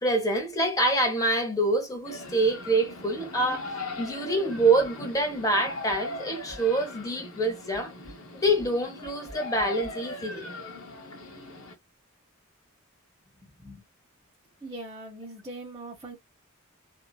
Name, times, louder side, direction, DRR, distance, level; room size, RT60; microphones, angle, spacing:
voice 1, 0.0-3.7 4.0-7.9 8.3-10.5, right 2 dB, 15° left, 0.9 m, -26 dB
sound 1, 2.0-11.7, left 3 dB, 80° left, 1.0 m, -39 dB
voice 2, 14.6-16.2, right 2 dB, 15° right, 0.8 m, -41 dB
2.8 x 2.5 x 2.2 m
head